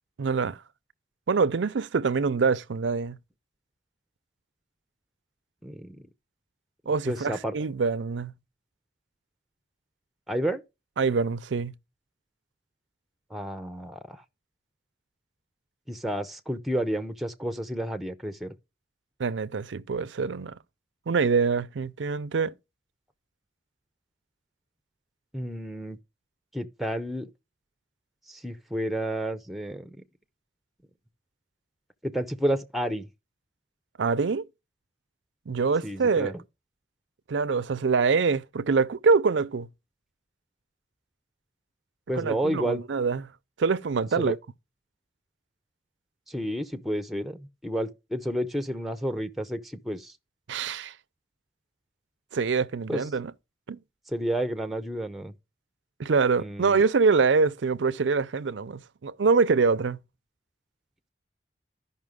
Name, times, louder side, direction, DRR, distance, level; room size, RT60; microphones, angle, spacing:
voice 1, 0.2-0.6 1.3-3.2 6.9-8.3 11.0-11.7 19.2-20.5 21.1-22.5 34.0-34.4 35.5-36.3 37.3-39.7 42.2-43.3 43.6-44.4 50.5-50.9 52.3-53.3 53.7-53.8 56.0-60.0, right 4 dB, 90° right, 0.5 m, -25 dB
voice 2, 5.6-6.0 7.1-7.5 10.3-10.6 13.3-14.2 15.9-18.5 25.3-26.0 26.5-27.3 28.3-30.0 32.0-33.1 35.8-36.4 42.1-42.8 44.2-44.3 46.3-50.1 52.9-53.0 54.1-55.3 56.4-56.8, right 1 dB, ahead, 0.7 m, -31 dB
13.5 x 5.6 x 3.6 m
head